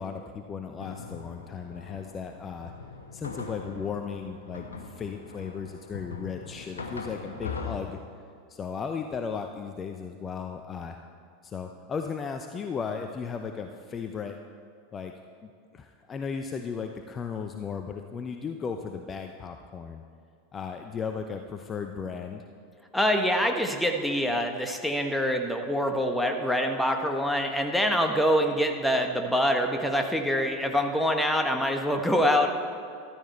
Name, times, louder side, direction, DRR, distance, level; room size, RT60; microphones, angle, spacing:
voice 1, 0.0-2.7 3.1-8.0 8.5-11.0 11.4-14.3 14.9-15.1 15.4-20.0 20.5-22.4, left 6 dB, 25° left, 5 dB, 0.7 m, -36 dB
sound 1, 0.8-7.7, left 4 dB, 80° left, 1.1 m, -41 dB
voice 2, 22.9-32.5, equal, 5° left, 4 dB, 1.3 m, -25 dB
14.0 x 12.5 x 4.4 m, 2.3 s
figure-of-eight pair, 85°, 0 cm